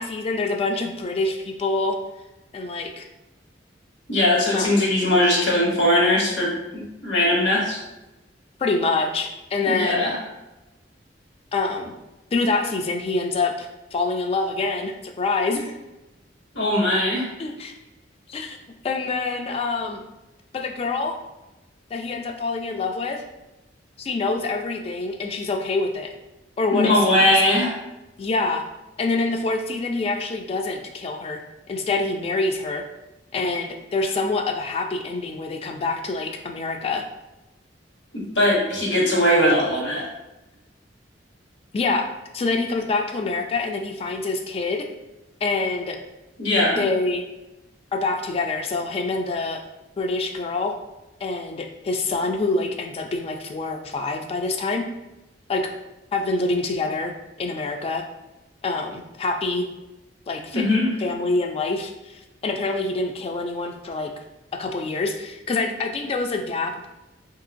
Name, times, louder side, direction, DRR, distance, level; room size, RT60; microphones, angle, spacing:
voice 1, 0.0-2.0 2.5-3.1 4.5-4.7 8.6-10.1 11.5-11.9 12.3-15.8 17.4-17.8 18.3-18.6 18.8-20.0 20.5-21.2 21.9-23.2 24.0-26.1 26.6-27.3 28.2-28.6 29.0-31.4 31.7-32.8 33.3-37.1 41.7-42.1 42.3-44.9 45.4-46.0 46.7-47.2 47.9-49.6 50.0-50.8 51.2-54.9 55.5-55.7 56.1-57.1 57.4-58.0 58.6-59.7 60.3-60.7 61.0-64.1 64.5-66.9, left 3 dB, 35° left, 4 dB, 0.3 m, -26 dB
voice 2, 4.1-7.8 9.7-10.1 16.5-17.3 26.7-27.7 38.1-40.0 46.4-46.8 60.5-60.9, left 1 dB, 80° left, -3 dB, 1.0 m, -20 dB
3.0 x 2.8 x 2.5 m, 1.0 s
head